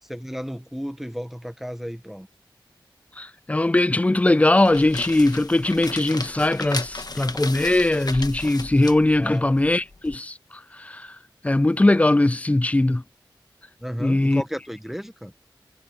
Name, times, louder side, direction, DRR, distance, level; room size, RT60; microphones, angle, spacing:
voice 1, 0.1-2.3 9.2-9.4 13.8-15.3, equal, 5° right, 1.1 m, -33 dB
voice 2, 3.2-10.3 10.8-11.0 11.4-13.0 14.0-14.4, left 2 dB, 15° left, 0.4 m, -20 dB
Papers rustling, 4.5-10.2, left 3 dB, 50° left, 1.6 m, -35 dB
cardioid pair, 45°, 9 cm